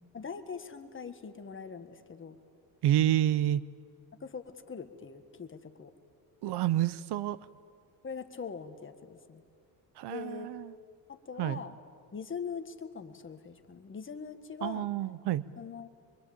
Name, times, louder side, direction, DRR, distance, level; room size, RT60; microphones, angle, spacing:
voice 1, 0.1-2.4 4.2-5.9 8.0-9.4 10.1-10.5 11.1-11.8 12.1-14.9 15.6-15.9, left 6 dB, 25° left, 8 dB, 1.6 m, -42 dB
voice 2, 2.8-3.7 6.4-7.4 10.0-10.7 11.4-11.6 14.6-15.4, right 12 dB, 65° right, 18 dB, 0.8 m, -28 dB
24.0 x 23.5 x 8.8 m, 2.3 s
cardioid pair, 120°, 44 cm